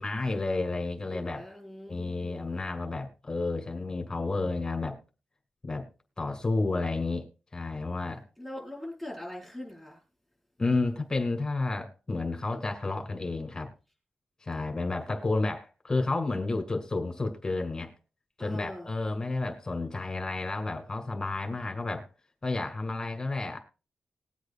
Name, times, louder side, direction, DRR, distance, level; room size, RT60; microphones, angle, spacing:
voice 1, 0.0-1.5 1.9-5.0 5.6-5.9 6.2-7.3 7.5-8.2 10.6-13.7 14.4-17.9 18.4-22.1 22.4-23.6, left 3 dB, 25° left, 2.2 m, -31 dB
voice 2, 1.1-2.4 8.4-10.0 18.4-18.8, left 1 dB, ahead, 4.8 m, -41 dB
20.5 x 8.1 x 2.3 m
wide cardioid pair, 125°, 3 cm